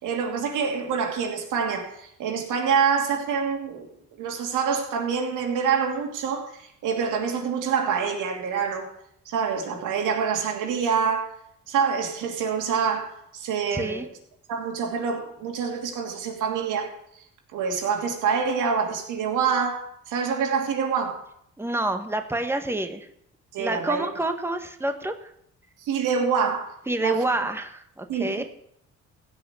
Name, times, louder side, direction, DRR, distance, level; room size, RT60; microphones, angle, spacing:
voice 1, 0.0-8.9 9.2-11.4 11.7-14.0 14.5-17.3 17.5-21.2 23.5-24.2 25.8-27.2 28.1-28.4, right 6 dB, 85° right, 2 dB, 2.9 m, -26 dB
voice 2, 13.7-14.1 21.6-23.1 23.6-25.3 26.9-28.4, right 2 dB, 10° right, 6 dB, 1.4 m, -28 dB
16.5 x 5.8 x 8.4 m, 0.71 s
cardioid pair, 90°, 30 cm